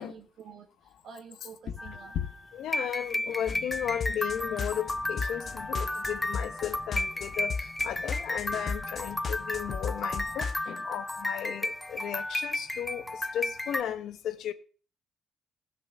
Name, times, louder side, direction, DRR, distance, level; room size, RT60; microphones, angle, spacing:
voice 1, 0.0-2.2, right 6 dB, 75° right, 1.7 m, -49 dB
sound 1, 1.8-13.8, left 1 dB, 15° left, 0.5 m, -34 dB
voice 2, 2.5-7.5 7.8-14.5, left 10 dB, 75° left, 1.0 m, -35 dB
sound 2, 3.5-10.6, left 5 dB, 50° left, 1.0 m, -36 dB
16.0 x 6.1 x 5.9 m
cardioid pair, 90°, 0 cm